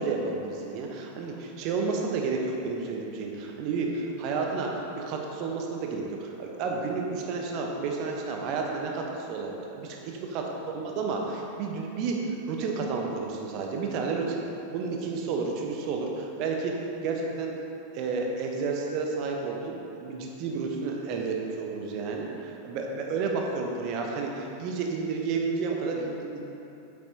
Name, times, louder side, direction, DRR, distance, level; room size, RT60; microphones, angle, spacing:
voice 1, 0.0-10.4 10.7-12.2 12.5-14.4 14.7-16.7 17.0-17.5 17.9-26.5, right 4 dB, 40° right, 0 dB, 1.1 m, -31 dB
8.6 x 8.1 x 2.9 m, 2.9 s
figure-of-eight pair, 90°, 0 cm